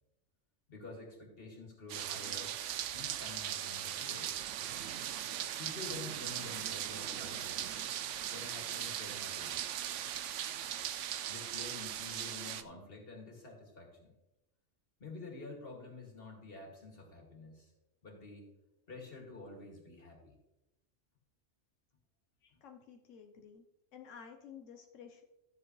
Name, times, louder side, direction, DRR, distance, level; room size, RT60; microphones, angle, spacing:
voice 1, 0.7-2.6 2.9-4.4 5.6-7.7 8.3-9.7 11.3-14.1 15.0-17.7 18.0-18.5 18.9-20.3 22.5-22.6, left 3 dB, 50° left, 0 dB, 2.5 m, -49 dB
sound 1, 1.9-12.6, right 10 dB, 80° right, 0.9 m, -39 dB
voice 2, 22.4-23.6 23.9-25.2, left 7 dB, 90° left, 4 dB, 1.2 m, -53 dB
13.5 x 7.3 x 3.1 m, 0.96 s
omnidirectional pair, 1.2 m